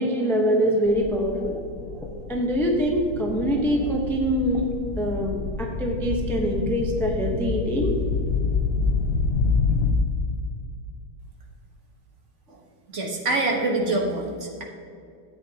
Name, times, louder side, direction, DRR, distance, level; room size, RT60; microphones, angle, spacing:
voice 1, 0.0-1.6 1.9-4.7 5.0-7.9, equal, 5° left, 0 dB, 0.4 m, -24 dB
sound 1, 0.8-9.9, left 4 dB, 80° left, 0.5 m, -27 dB
voice 2, 12.9-14.6, right 2 dB, 45° right, -1 dB, 1.4 m, -25 dB
13.5 x 8.4 x 2.9 m, 2.4 s
omnidirectional pair, 2.0 m